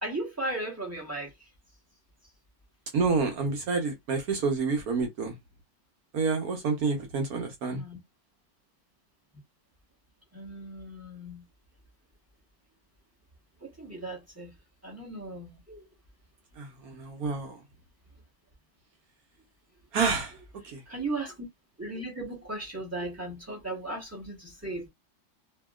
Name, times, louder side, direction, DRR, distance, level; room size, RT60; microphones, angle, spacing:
voice 1, 0.0-1.5 7.8-8.0 10.3-11.4 13.6-14.6 14.8-15.9 20.9-21.5 21.8-24.9, right 2 dB, 15° right, 0.7 m, -36 dB
voice 2, 2.9-5.4 6.1-7.8 16.6-17.6 19.9-20.3 20.6-20.8, right 4 dB, 60° right, 1.1 m, -28 dB
2.8 x 2.8 x 2.3 m
omnidirectional pair, 2.0 m